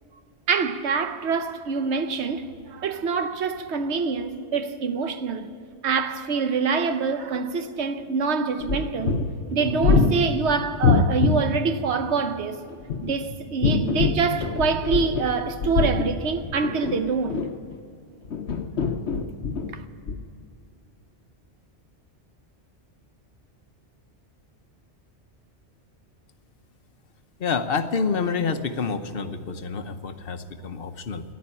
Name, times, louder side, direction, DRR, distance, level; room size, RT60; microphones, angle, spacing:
voice 1, 0.5-5.5 5.8-9.2 9.5-12.6 13.0-17.5 19.7-19.8, right 5 dB, 75° right, 1.2 m, -25 dB
sound 1, 8.6-11.4 12.7-15.3 15.6-17.7 18.3-19.7 20.1-20.2, left 4 dB, 75° left, 1.2 m, -24 dB
voice 2, 27.4-31.2, left 5 dB, 55° left, 1.0 m, -28 dB
13.5 x 10.5 x 9.8 m
omnidirectional pair, 1.2 m